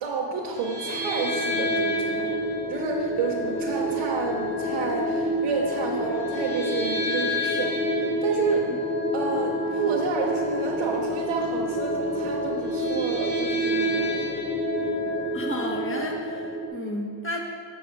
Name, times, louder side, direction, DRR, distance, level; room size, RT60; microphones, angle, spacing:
voice 1, 0.0-2.3 2.7-8.7 9.1-14.4, right 5 dB, 85° right, -3 dB, 0.9 m, -30 dB
sound 1, 0.6-16.7, equal, 75° left, 1.6 m, -27 dB
voice 2, 15.3-17.4, left 1 dB, 25° left, 0 dB, 1.4 m, -32 dB
6.8 x 6.3 x 4.7 m, 2.2 s
cardioid pair, 65°, 48 cm